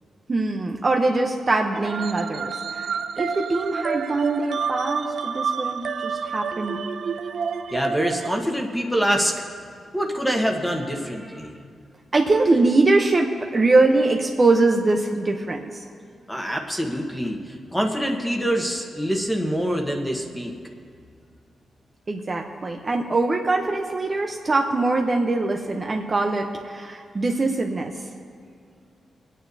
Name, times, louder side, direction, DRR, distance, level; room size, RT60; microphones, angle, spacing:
voice 1, 0.3-6.8 12.1-15.8 22.1-27.9, right 2 dB, 35° right, 2 dB, 0.8 m, -22 dB
sound 1, 1.7-8.3, right 6 dB, 65° right, 0.5 m, -29 dB
voice 2, 7.7-9.4 9.9-11.7 16.3-20.5, equal, 5° left, 2 dB, 1.3 m, -25 dB
26.0 x 9.2 x 2.8 m, 2.2 s
cardioid pair, 100°, 0 cm